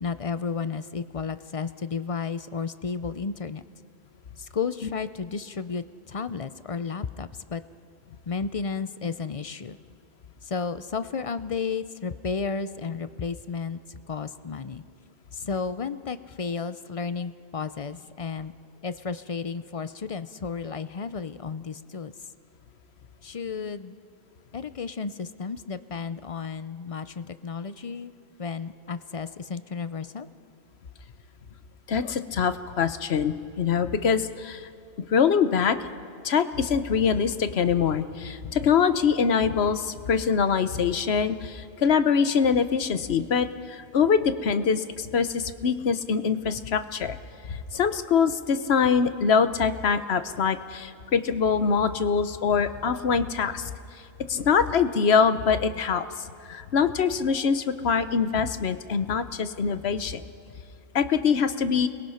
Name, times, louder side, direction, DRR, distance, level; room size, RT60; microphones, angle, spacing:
voice 1, 0.0-3.6 4.4-7.6 8.3-9.8 10.4-13.8 14.1-14.8 15.3-18.5 18.8-22.1 23.2-24.0 24.5-28.1 28.4-30.3, left 5 dB, 40° left, 13 dB, 0.6 m, -32 dB
voice 2, 31.9-34.7 35.0-35.8 36.2-47.2 47.4-53.7 54.3-56.1 56.5-60.2 60.9-61.9, left 6 dB, 75° left, 11 dB, 1.2 m, -24 dB
29.5 x 21.5 x 5.7 m, 2.3 s
omnidirectional pair, 1.1 m